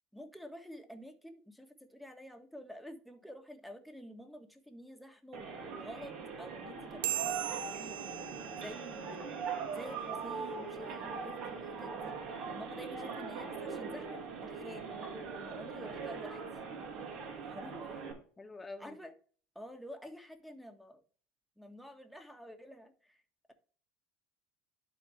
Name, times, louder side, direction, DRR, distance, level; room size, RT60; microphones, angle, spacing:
voice 1, 0.1-8.1 8.6-9.4 9.7-12.2 12.5-14.8 15.4-16.4 17.4-18.0 18.8-19.1 19.5-21.0 21.6-23.2, equal, ahead, 1.6 m, -49 dB
sound 1, 5.3-18.1, right 5 dB, 60° right, 2.4 m, -41 dB
sound 2, 7.0-9.9, right 15 dB, 75° right, 0.6 m, -40 dB
voice 2, 18.4-19.0, left 3 dB, 20° left, 1.4 m, -46 dB
11.5 x 4.2 x 3.3 m
hypercardioid pair, 80°, 0 cm